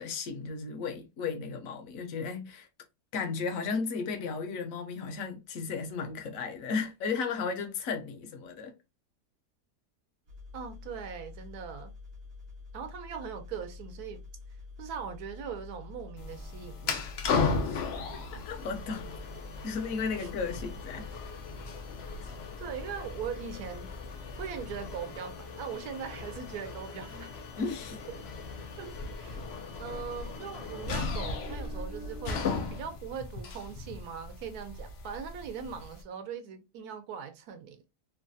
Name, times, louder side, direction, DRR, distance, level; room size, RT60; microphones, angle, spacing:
voice 1, 0.0-2.7 3.1-8.7 18.3-19.1 19.6-21.1 27.6-28.0, left 5 dB, 65° left, 1.0 m, -34 dB
sound 1, 10.3-25.0, left 4 dB, 50° right, 0.8 m, -47 dB
voice 2, 10.5-11.9 12.7-14.2 14.8-17.1 20.2-20.3 22.6-23.9 24.2-27.4 28.1-28.3 28.8-29.4 29.8-37.8, right 7 dB, 75° right, 1.1 m, -40 dB
sound 2, 16.2-36.0, left 4 dB, 85° left, 0.5 m, -37 dB
3.1 x 2.2 x 2.6 m
omnidirectional pair, 1.8 m